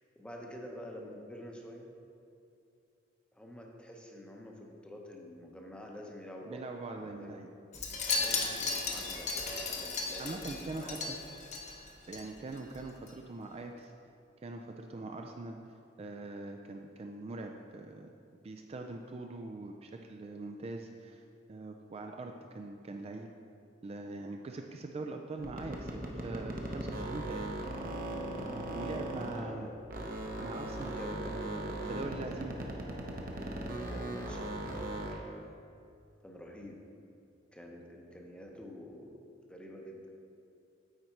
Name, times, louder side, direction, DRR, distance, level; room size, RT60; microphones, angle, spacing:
voice 1, 0.2-1.9 3.3-6.6 6.9-7.5 8.2-11.2 29.3-29.9 31.0-32.1 33.5-34.6 34.9-35.6 36.2-36.8 37.5-40.2, left 1 dB, 5° left, 0 dB, 0.7 m, -48 dB
voice 2, 6.5-7.5 10.2-11.2 12.1-13.9 14.4-15.6 16.0-18.1 18.4-21.2 21.5-23.3 23.8-27.7 28.1-29.7 30.4-32.6, right 3 dB, 35° right, 3 dB, 0.3 m, -42 dB
Wind chime, 7.7-12.2 12.5-12.8 13.1-13.2, left 4 dB, 40° left, 0.8 m, -35 dB
sound 1, 25.4-29.6 29.9-35.3, right 1 dB, 50° right, 0.8 m, -38 dB
8.9 x 4.1 x 4.5 m, 2.5 s
head